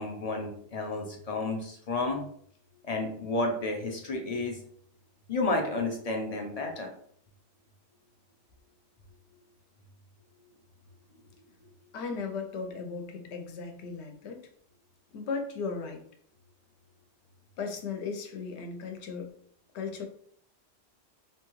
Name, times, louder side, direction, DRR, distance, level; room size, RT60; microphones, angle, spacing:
voice 1, 0.0-2.2 2.8-4.6 5.3-6.9, left 2 dB, 50° left, 2 dB, 0.5 m, -31 dB
voice 2, 11.9-14.5 15.1-16.0 17.6-19.3 19.7-20.1, left 5 dB, 80° left, 4 dB, 0.9 m, -36 dB
2.9 x 2.3 x 3.0 m, 0.62 s
omnidirectional pair, 1.1 m